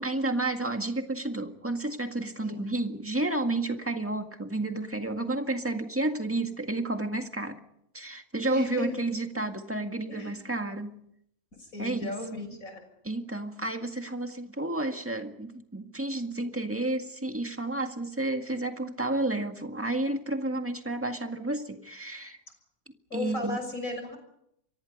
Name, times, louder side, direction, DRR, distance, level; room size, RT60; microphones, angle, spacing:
voice 1, 0.0-7.6 7.9-11.0 11.8-12.1 13.0-22.4 23.1-23.6, right 2 dB, 10° right, 5 dB, 1.7 m, -31 dB
voice 2, 8.5-9.0 10.1-10.4 11.6-12.8 23.1-24.2, left 2 dB, 55° left, 6 dB, 6.8 m, -36 dB
29.0 x 24.0 x 5.4 m, 0.76 s
omnidirectional pair, 1.7 m